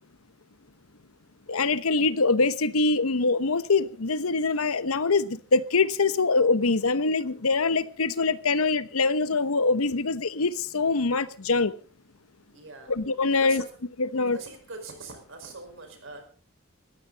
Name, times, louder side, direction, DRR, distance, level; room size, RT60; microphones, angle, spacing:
voice 1, 1.5-11.7 12.9-13.6 14.0-14.4, left 3 dB, 90° left, 1.0 m, -24 dB
voice 2, 12.5-12.9 13.4-13.7 14.3-16.2, right 3 dB, 60° right, 5.0 m, -42 dB
19.5 x 15.0 x 4.1 m
head